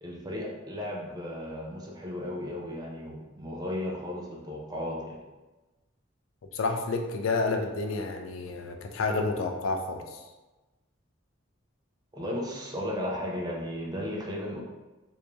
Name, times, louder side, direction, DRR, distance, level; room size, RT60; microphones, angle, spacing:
voice 1, 0.0-5.2 12.1-14.6, left 1 dB, 20° right, -2 dB, 0.5 m, -35 dB
voice 2, 6.5-10.2, left 3 dB, 80° left, 4 dB, 0.4 m, -30 dB
3.1 x 2.6 x 3.4 m, 1.1 s
head